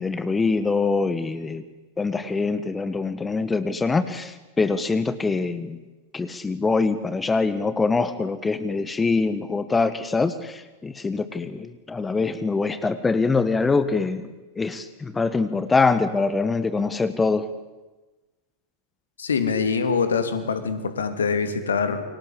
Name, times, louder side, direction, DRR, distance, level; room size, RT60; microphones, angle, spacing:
voice 1, 0.0-1.6 2.0-5.8 6.1-14.2 14.6-17.5, left 4 dB, 15° left, 13 dB, 1.4 m, -24 dB
voice 2, 19.2-22.0, left 5 dB, 70° left, 9 dB, 3.0 m, -24 dB
28.5 x 24.0 x 8.2 m, 1.1 s
figure-of-eight pair, 90°, 0 cm